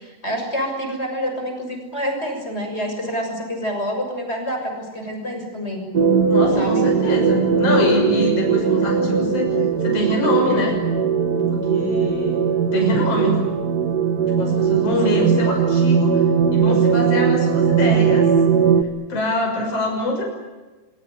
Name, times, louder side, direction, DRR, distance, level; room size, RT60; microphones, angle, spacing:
voice 1, 0.0-5.9 6.5-6.8 15.1-15.3, equal, 20° left, 4 dB, 7.0 m, -27 dB
sound 1, 5.9-18.8, right 6 dB, 40° right, 1.6 m, -19 dB
voice 2, 6.3-9.6 9.8-10.8 11.4-13.4 13.8-14.0 14.4-16.2 16.5-18.3 19.1-20.2, left 1 dB, 45° left, 1 dB, 7.3 m, -24 dB
24.0 x 23.5 x 9.8 m, 1.2 s
omnidirectional pair, 3.7 m